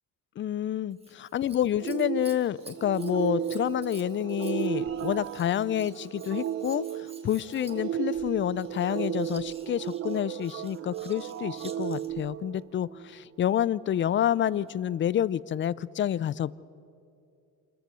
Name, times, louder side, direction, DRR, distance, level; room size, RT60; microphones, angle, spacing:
voice 1, 0.4-16.5, left 10 dB, 35° left, 20 dB, 0.4 m, -28 dB
Scissors, 0.9-12.3 14.2-14.8 15.5-15.6, right 3 dB, 15° right, 1.4 m, -53 dB
sound 1, 1.8-13.1, right 10 dB, 40° right, 0.5 m, -34 dB
sound 2, 2.1-9.7, right 3 dB, 75° right, 7.0 m, -63 dB
27.0 x 14.0 x 6.8 m, 2.6 s
cardioid pair, 120°, 35 cm